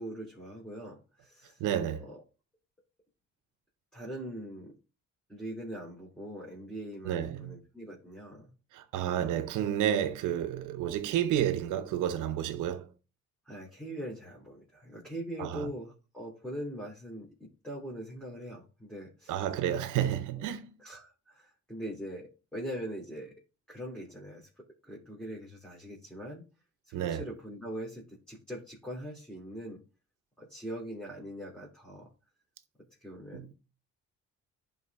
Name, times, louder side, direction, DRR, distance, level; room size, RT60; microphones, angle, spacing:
voice 1, 0.0-1.6 2.0-2.2 3.9-4.7 5.3-8.5 9.0-9.3 13.4-19.4 20.4-20.5 20.8-23.3 23.7-24.5 24.9-26.4 26.9-29.8 30.4-32.1 33.0-33.5, equal, 5° left, 3.1 m, -42 dB
voice 2, 1.6-2.1 7.0-7.6 8.7-12.9 15.4-15.7 19.3-20.7 26.9-27.2 33.3-33.5, right 10 dB, 90° right, 0.9 m, -31 dB
11.0 x 4.0 x 3.5 m
cardioid pair, 90°, 30 cm